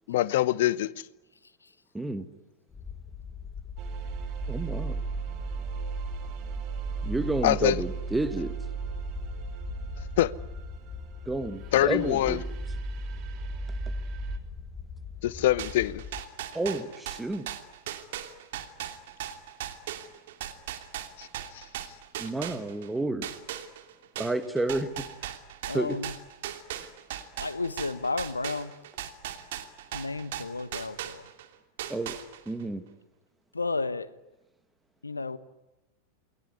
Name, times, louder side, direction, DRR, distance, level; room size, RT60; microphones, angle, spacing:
voice 1, 0.1-0.9 7.4-7.8 10.2-10.3 11.7-12.4 15.2-16.0 21.2-21.3 21.5-21.6, left 14 dB, 55° left, 20 dB, 0.9 m, -24 dB
voice 2, 1.9-2.3 4.5-5.0 7.0-8.5 11.3-12.4 16.5-17.5 22.2-23.3 24.2-25.3 25.7-26.0 26.8-26.9 31.9-32.2 32.5-32.8, right 2 dB, 5° right, 11 dB, 1.9 m, -30 dB
sound 1, 2.7-16.2, left 6 dB, 15° left, 1.5 m, -42 dB
sound 2, 3.8-14.4, right 5 dB, 40° right, 3.3 m, -36 dB
sound 3, 15.6-22.9 23.2-31.5 31.8-32.6, right 11 dB, 55° right, 2.8 m, -38 dB
voice 3, 25.6-26.2 27.4-28.7 29.9-31.3 33.5-34.1 35.0-35.4, left 3 dB, 80° left, 16 dB, 1.3 m, -33 dB
29.0 x 21.0 x 9.6 m, 0.96 s
figure-of-eight pair, 90°, 0 cm